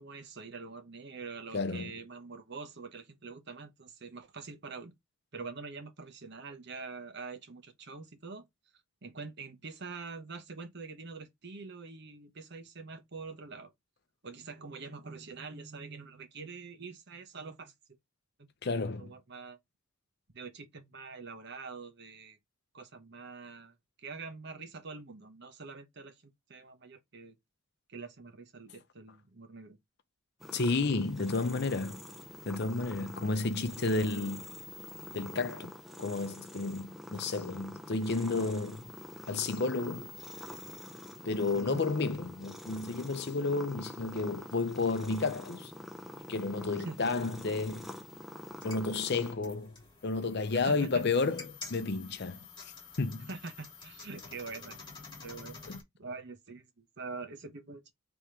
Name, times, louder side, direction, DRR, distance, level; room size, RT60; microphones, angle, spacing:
voice 1, 0.0-4.9 5.3-8.4 9.0-13.7 14.2-17.7 19.0-19.6 20.3-22.4 22.7-27.4 27.9-29.8 41.5-41.8 46.7-47.2 50.5-51.0 53.3-54.8 55.2-55.6 56.0-57.9, right 4 dB, 50° right, 0.9 m, -45 dB
voice 2, 1.5-1.9 18.6-19.1 30.5-32.0 32.5-34.5 35.1-38.8 39.3-40.1 41.2-45.7 46.3-47.9 48.6-49.8 50.0-52.7 53.0-53.3 55.7-55.8, left 3 dB, 50° left, 0.6 m, -32 dB
sound 1, 30.4-49.3, left 1 dB, ahead, 0.5 m, -46 dB
sound 2, 48.4-55.8, left 4 dB, 20° left, 1.3 m, -49 dB
3.5 x 3.0 x 4.7 m
head